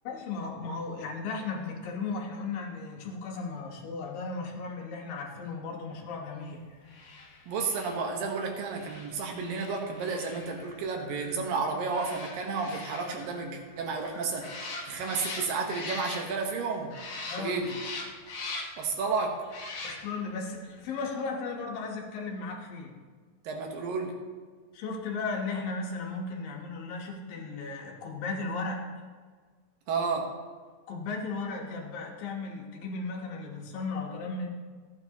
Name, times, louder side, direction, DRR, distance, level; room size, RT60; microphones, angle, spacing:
voice 1, 0.0-6.6 17.3-17.6 19.8-22.9 24.7-28.8 30.9-34.5, left 4 dB, 90° left, 0 dB, 3.0 m, -35 dB
sound 1, 6.8-16.6 16.9-18.9 19.4-20.3 20.6-20.8, left 3 dB, 70° left, 1.0 m, -42 dB
voice 2, 7.5-16.9 17.4-17.8 18.8-19.4 23.4-24.1 29.9-30.3, right 4 dB, 85° right, 2 dB, 2.9 m, -32 dB
14.5 x 8.7 x 2.9 m, 1.5 s
omnidirectional pair, 3.9 m